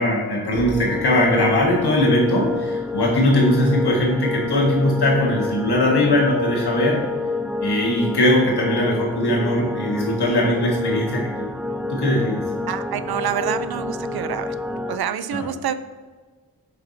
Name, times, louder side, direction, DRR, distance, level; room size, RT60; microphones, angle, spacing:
voice 1, 0.0-7.0 7.6-11.3 11.9-12.4 15.3-15.5, left 1 dB, 85° left, -3 dB, 1.7 m, -20 dB
sound 1, 0.5-15.0, left 2 dB, 5° right, 0.3 m, -28 dB
voice 2, 12.7-14.5 14.9-15.7, right 9 dB, 75° right, 13 dB, 0.5 m, -27 dB
6.9 x 6.0 x 2.6 m, 1.4 s
cardioid pair, 40°, 38 cm